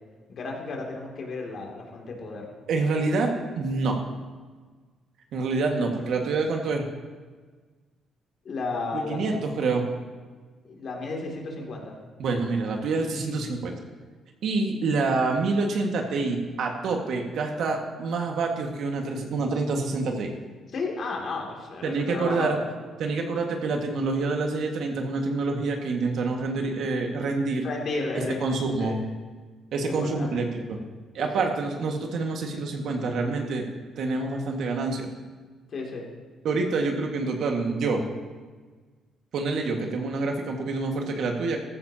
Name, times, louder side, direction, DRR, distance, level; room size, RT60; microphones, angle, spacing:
voice 1, 0.3-2.5 8.4-9.3 10.6-12.0 20.7-22.6 27.6-28.4 28.8-29.0 29.9-30.4 31.2-31.4 35.7-36.1, left 3 dB, 60° left, 0 dB, 2.7 m, -33 dB
voice 2, 2.7-4.0 5.3-6.9 8.9-9.9 12.2-13.7 14.4-20.3 21.8-22.6 23.0-27.7 28.4-29.0 29.7-30.8 31.1-33.7 34.0-35.1 36.4-38.0 39.3-41.6, right 3 dB, 70° right, 2 dB, 1.8 m, -27 dB
14.5 x 14.0 x 2.9 m, 1.4 s
cardioid pair, 90°, 0 cm